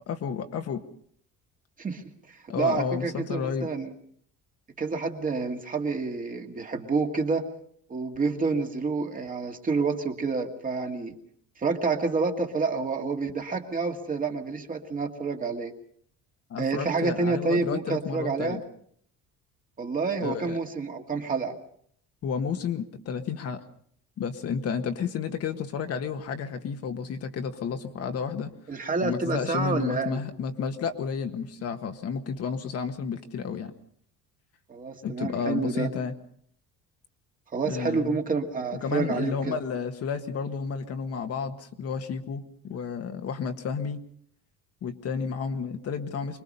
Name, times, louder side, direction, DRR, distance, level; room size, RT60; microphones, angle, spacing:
voice 1, 0.1-0.8 2.5-3.7 16.5-18.6 20.2-20.6 22.2-23.6 24.2-28.5 29.0-33.7 35.0-36.2 37.6-38.2 38.8-44.0 44.8-46.4, left 6 dB, 45° left, 6 dB, 1.5 m, -31 dB
voice 2, 2.3-3.9 4.8-7.5 7.9-11.1 11.6-15.7 16.6-18.6 19.8-21.6 28.7-30.2 34.7-35.9 37.5-39.6, right 4 dB, 25° right, 4 dB, 2.0 m, -28 dB
25.0 x 21.0 x 5.5 m, 0.63 s
cardioid pair, 155°, 33 cm